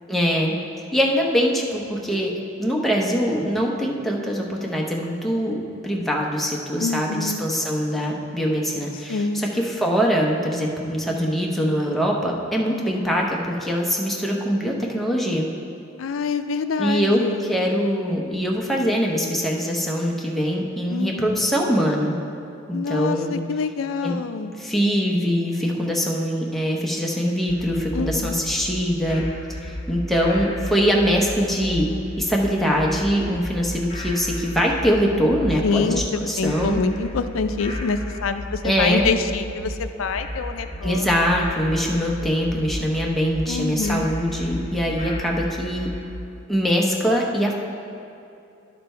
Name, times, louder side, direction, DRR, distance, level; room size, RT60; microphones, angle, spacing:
voice 1, 0.1-0.5 0.9-2.3 2.6-15.5 16.8-22.2 22.7-23.4 24.0-24.1 24.6-29.2 29.6-31.9 32.2-36.8 38.6-39.1 40.8-45.9 46.5-47.5, equal, ahead, -2 dB, 0.9 m, -23 dB
voice 2, 6.8-7.4 9.1-9.5 16.0-17.5 20.9-21.3 22.7-24.5 27.9-28.4 35.6-41.1 43.5-44.1, left 4 dB, 80° left, 10 dB, 0.4 m, -26 dB
sound 1, 27.5-46.1, left 1 dB, 30° left, 0.9 m, -34 dB
11.5 x 5.1 x 4.4 m, 2.7 s
head